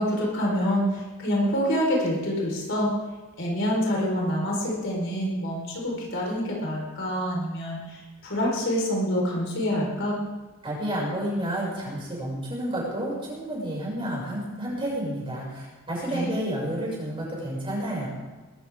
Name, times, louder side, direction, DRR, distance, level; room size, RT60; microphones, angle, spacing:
voice 1, 0.0-2.9 3.4-10.2 16.1-16.3, equal, 60° left, -2 dB, 4.5 m, -26 dB
voice 2, 10.6-18.1, right 1 dB, 25° right, -4 dB, 6.5 m, -30 dB
21.0 x 13.5 x 3.7 m, 1.2 s
head